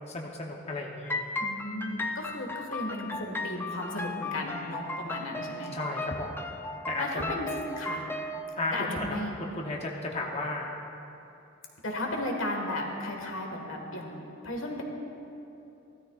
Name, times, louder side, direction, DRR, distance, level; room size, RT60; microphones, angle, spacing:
voice 1, 0.1-1.2 5.7-6.4 6.9-7.4 8.6-10.7, left 2 dB, 35° left, 0 dB, 0.8 m, -34 dB
sound 1, 1.0-8.4, left 2 dB, 10° left, 0.4 m, -36 dB
voice 2, 1.4-5.8 7.0-7.5 7.8-8.0 8.7-9.4 11.8-14.8, left 1 dB, 90° left, 1 dB, 1.6 m, -35 dB
16.0 x 13.0 x 2.4 m, 2.8 s
head